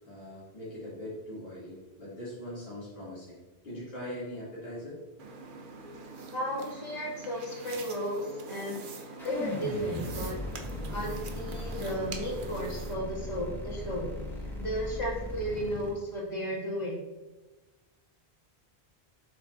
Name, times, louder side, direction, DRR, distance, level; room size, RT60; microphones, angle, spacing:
voice 1, 0.0-3.4 3.6-5.0 5.8-5.9, left 1 dB, 60° left, -10 dB, 2.7 m, -41 dB
sound 1, 5.2-12.9, right 4 dB, 55° right, 0.9 m, -44 dB
voice 2, 6.3-8.8 9.2-10.4 10.9-14.1 14.6-17.1, equal, 40° left, -6 dB, 2.4 m, -34 dB
sound 2, 9.2-15.9, left 1 dB, ahead, 1.6 m, -38 dB
8.0 x 5.9 x 2.6 m, 1.2 s
omnidirectional pair, 1.1 m